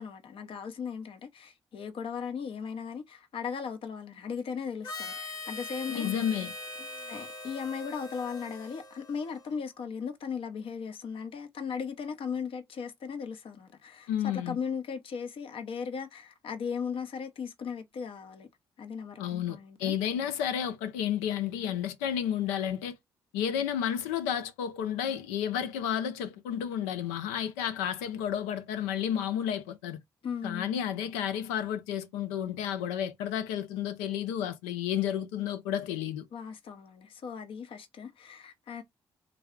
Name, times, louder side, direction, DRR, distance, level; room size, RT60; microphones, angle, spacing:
voice 1, 0.0-6.1 6.9-18.5 18.8-19.9 30.2-30.7 36.3-38.8, left 6 dB, 65° left, 0.8 m, -37 dB
Harmonica, 4.8-9.6, left 2 dB, 40° left, 1.1 m, -42 dB
voice 2, 5.9-6.5 14.1-14.6 19.2-23.0 23.3-30.0 30.4-36.3, left 9 dB, 90° left, 0.5 m, -31 dB
3.4 x 2.2 x 3.6 m
hypercardioid pair, 45°, 10 cm